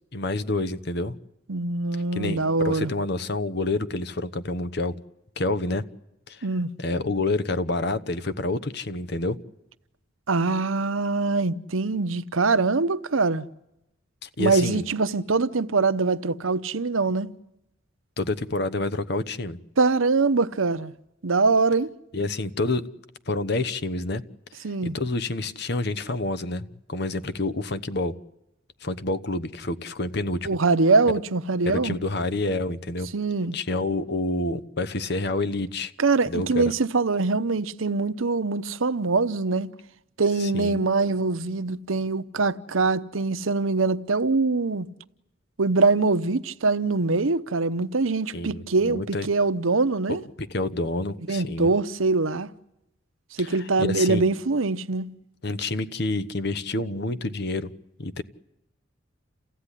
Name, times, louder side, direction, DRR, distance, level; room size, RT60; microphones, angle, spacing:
voice 1, 0.1-1.2 2.1-4.9 5.4-5.8 6.3-6.5 6.8-9.4 14.2-14.8 18.2-19.6 22.1-22.8 23.3-24.2 24.6-28.1 28.8-30.5 31.6-33.1 33.5-35.9 36.3-36.6 40.4-40.8 48.3-49.3 50.1-51.7 53.4-54.2 55.4-57.7 58.0-58.2, left 2 dB, 55° left, 1.1 m, -28 dB
voice 2, 1.5-2.9 6.4-6.7 10.3-13.4 14.4-17.3 19.8-20.9 21.2-21.9 24.6-24.9 30.4-32.0 33.1-33.6 36.0-39.7 40.2-44.9 45.6-50.2 51.3-52.5 53.3-55.1, right 3 dB, 90° right, 0.9 m, -23 dB
28.5 x 15.5 x 10.0 m
head